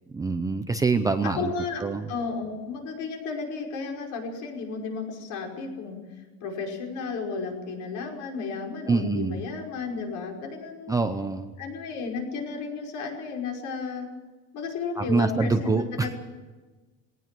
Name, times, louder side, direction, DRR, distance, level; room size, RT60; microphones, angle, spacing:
voice 1, 0.1-1.5 1.8-2.1 8.9-9.4 10.9-11.5 15.0-16.1, right 4 dB, 10° right, 7 dB, 0.6 m, -25 dB
voice 2, 1.2-6.0 6.4-11.0 11.6-14.1 14.5-16.2, left 4 dB, 55° left, 1 dB, 5.4 m, -33 dB
20.5 x 18.5 x 7.6 m, 1.3 s
cardioid pair, 175°, 37 cm